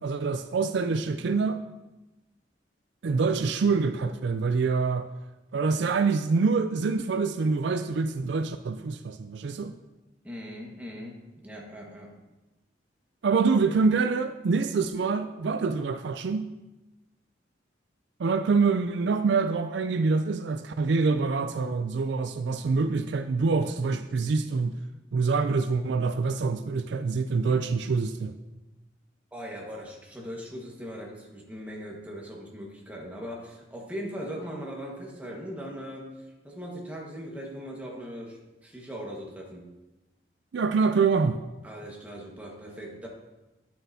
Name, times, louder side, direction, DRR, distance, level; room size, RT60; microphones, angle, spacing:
voice 1, 0.0-1.6 3.0-5.1 5.5-9.7 13.2-16.5 18.2-24.8 25.1-28.3 40.5-41.4, right 4 dB, 70° right, 9 dB, 0.4 m, -25 dB
voice 2, 10.2-11.2 11.4-12.1 29.3-36.1 36.4-39.7 41.6-43.1, equal, 10° right, -2 dB, 1.4 m, -39 dB
10.0 x 7.7 x 2.7 m, 1.0 s
head